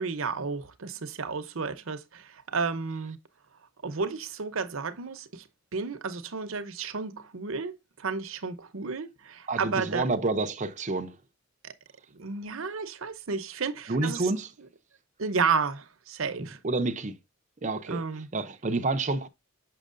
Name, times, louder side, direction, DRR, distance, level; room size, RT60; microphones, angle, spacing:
voice 1, 0.0-3.2 3.8-5.4 5.7-10.0 11.6-11.7 12.1-14.2 15.2-16.6 17.9-18.3, right 5 dB, 65° right, 0.8 m, -32 dB
voice 2, 9.5-11.2 13.9-14.5 16.4-17.2 17.6-19.3, right 3 dB, 35° right, 0.6 m, -29 dB
6.4 x 6.0 x 2.5 m
head